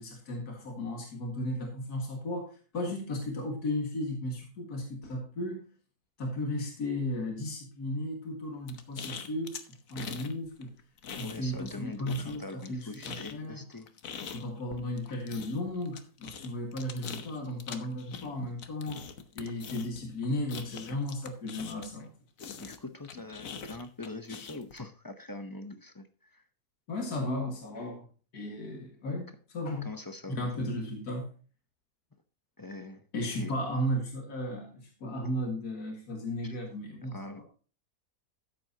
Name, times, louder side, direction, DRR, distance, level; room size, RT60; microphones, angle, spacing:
voice 1, 0.0-2.5 2.7-5.6 6.2-10.8 11.2-13.6 14.3-19.0 19.3-22.1 26.9-28.1 28.3-29.3 29.5-29.9 30.3-31.3 33.1-37.5, left 1 dB, 85° left, 2 dB, 2.3 m, -35 dB
sound 1, 8.7-10.3 10.6-11.8 12.1-22.0 22.4-24.8, left 6 dB, 65° left, 1.3 m, -43 dB
voice 2, 11.2-13.9 22.6-26.4 29.8-30.5 32.6-33.5 36.4-36.5 37.1-37.5, left 2 dB, 25° left, 8 dB, 0.4 m, -43 dB
13.5 x 7.8 x 2.8 m, 0.37 s
omnidirectional pair, 1.6 m